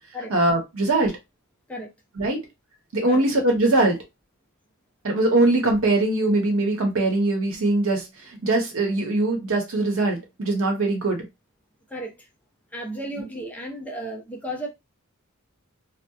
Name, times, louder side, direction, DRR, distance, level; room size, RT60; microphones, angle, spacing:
voice 1, 0.3-1.1 2.2-2.4 2.9-4.0 5.0-8.0 8.4-11.2, right 2 dB, 70° right, 0.8 m, -21 dB
voice 2, 12.7-14.7, right 1 dB, 5° left, 0.5 m, -33 dB
2.7 x 2.0 x 2.3 m
head